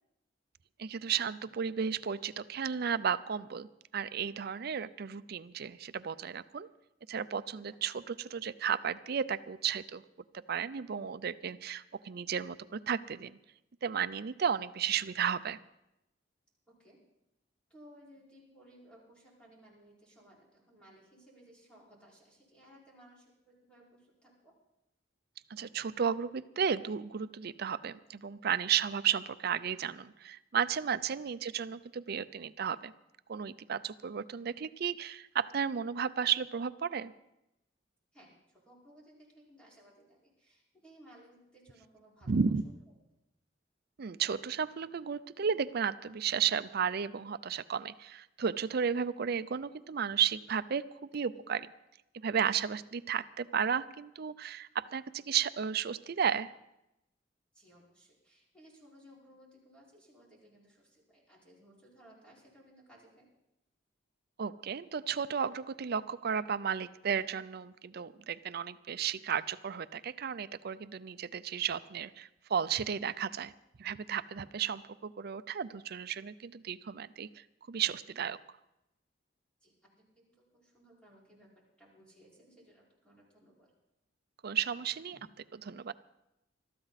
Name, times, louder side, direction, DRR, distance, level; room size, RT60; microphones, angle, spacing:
voice 1, 0.8-3.7 3.9-6.7 7.1-10.0 10.5-13.3 13.8-15.6 25.5-32.9 33.3-37.1 42.3-42.6 44.0-51.7 52.2-56.5 64.4-73.5 73.8-77.3 77.7-78.4 84.4-85.2 85.7-85.9, right 7 dB, 55° right, 15 dB, 0.5 m, -33 dB
voice 2, 16.7-17.0 17.7-24.5 31.1-31.3 38.1-42.8 49.0-49.1 57.5-63.3 79.6-83.7 85.1-85.2, equal, 5° left, -5 dB, 5.1 m, -60 dB
21.0 x 13.5 x 4.1 m, 0.87 s
head